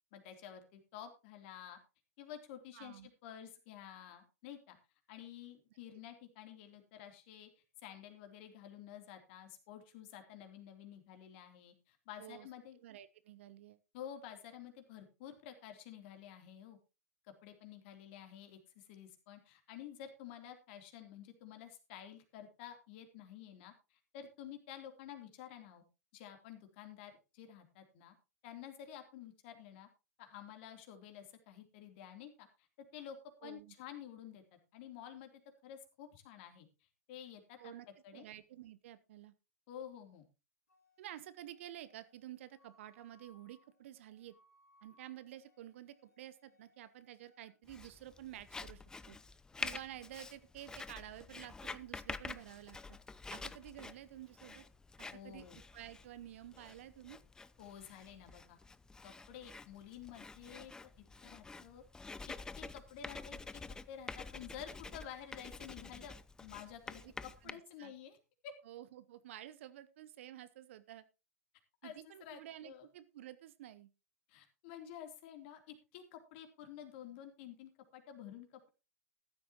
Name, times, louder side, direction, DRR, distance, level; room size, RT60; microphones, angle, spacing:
voice 1, 0.1-1.8 2.2-4.8 5.1-12.8 13.9-16.8 17.2-25.8 26.1-28.1 28.4-29.9 30.2-32.5 32.9-33.2 33.4-34.4 34.7-35.3 35.6-36.7 37.1-38.2 39.7-40.2 55.1-55.6 57.6-58.6 59.0-60.9 61.2-61.8 62.3-63.6 63.9-68.2 68.4-68.5 71.8-72.9 74.3-78.7, left 10 dB, 45° left, 5 dB, 3.2 m, -51 dB
voice 2, 2.7-3.1 12.2-12.5 12.7-13.8 33.4-33.7 37.6-37.9 38.1-39.3 41.0-44.3 44.8-48.8 49.1-49.2 49.6-53.0 53.3-54.6 55.0-55.4 55.7-57.2 67.0-67.1 67.4-67.9 68.6-71.0 71.8-73.9, right 12 dB, 55° right, 15 dB, 0.9 m, -51 dB
Wind instrument woodwind instrument, 40.7-47.5, equal, 75° left, 4.5 m, -70 dB
Writing, 47.7-67.5, left 3 dB, 10° left, 0.5 m, -48 dB
14.5 x 12.5 x 3.0 m, 0.29 s
figure-of-eight pair, 100°, 8 cm